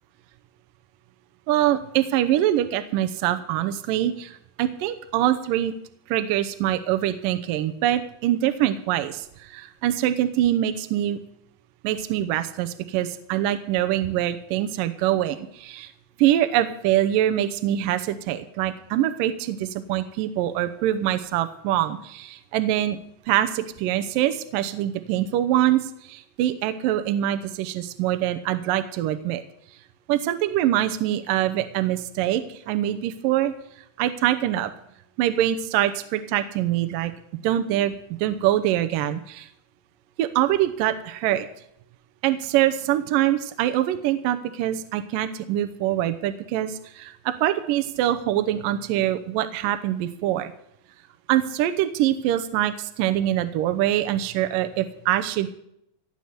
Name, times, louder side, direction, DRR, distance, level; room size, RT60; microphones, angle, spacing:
voice 1, 1.5-5.7 6.1-11.2 11.8-15.9 16.2-23.0 23.3-29.4 30.1-33.5 34.0-34.7 35.2-37.1 37.4-37.9 38.2-39.5 40.2-41.5 42.2-50.5 51.3-55.5, right 12 dB, 75° right, 9 dB, 2.1 m, -24 dB
17.0 x 7.0 x 8.0 m, 0.75 s
omnidirectional pair, 4.8 m